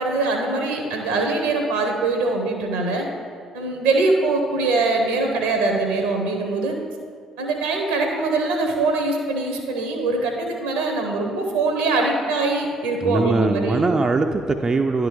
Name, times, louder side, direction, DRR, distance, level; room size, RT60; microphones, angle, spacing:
voice 1, 0.0-3.1 3.5-6.8 7.4-13.8, right 3 dB, 75° right, 3 dB, 0.9 m, -22 dB
voice 2, 13.0-15.1, right 3 dB, 30° right, 5 dB, 0.4 m, -21 dB
10.5 x 3.6 x 4.8 m, 2.1 s
figure-of-eight pair, 45°, 2 cm